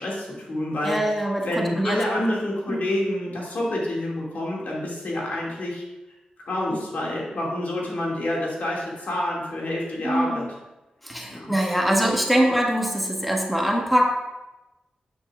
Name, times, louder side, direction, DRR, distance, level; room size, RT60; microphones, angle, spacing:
voice 1, 0.0-1.0 1.4-5.8 6.5-10.4 11.4-11.5, left 1 dB, 70° left, -3 dB, 2.2 m, -28 dB
voice 2, 0.8-2.0 2.7-2.8 10.0-10.5 11.0-14.1, equal, ahead, 0 dB, 1.4 m, -23 dB
8.6 x 6.9 x 2.4 m, 1.0 s
cardioid pair, 45°, 3 cm